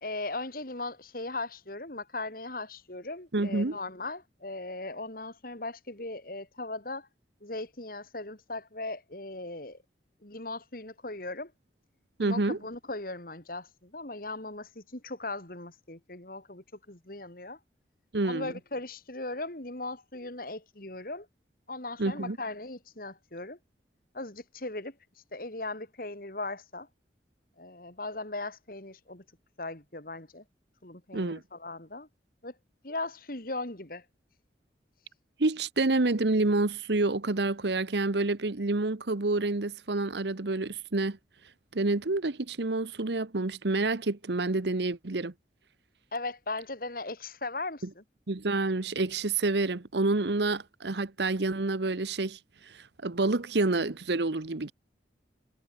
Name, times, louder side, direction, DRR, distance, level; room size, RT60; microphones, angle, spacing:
voice 1, 0.0-7.1 7.4-9.8 10.2-11.5 12.2-17.6 18.2-21.3 21.7-23.6 24.1-25.0 25.3-26.9 27.6-29.2 29.6-30.4 30.8-32.1 32.4-32.5 32.8-34.0 46.1-48.0, left 2 dB, 50° left, 3.2 m, -38 dB
voice 2, 3.3-3.8 12.2-12.6 18.1-18.5 22.0-22.4 31.1-31.4 35.4-41.2 41.7-45.3 48.3-52.4 52.7-54.7, right 2 dB, 70° right, 1.1 m, -28 dB
head